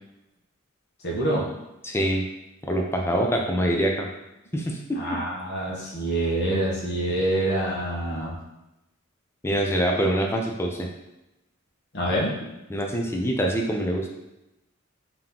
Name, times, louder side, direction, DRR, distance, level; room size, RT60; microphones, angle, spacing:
voice 1, 1.0-1.5 5.0-8.4 11.9-12.3, right 1 dB, 55° left, -3 dB, 1.1 m, -26 dB
voice 2, 1.8-2.2 2.7-4.1 4.5-5.2 9.4-10.9 12.7-14.1, equal, 10° left, 1 dB, 0.5 m, -25 dB
3.7 x 2.9 x 3.7 m, 0.93 s
head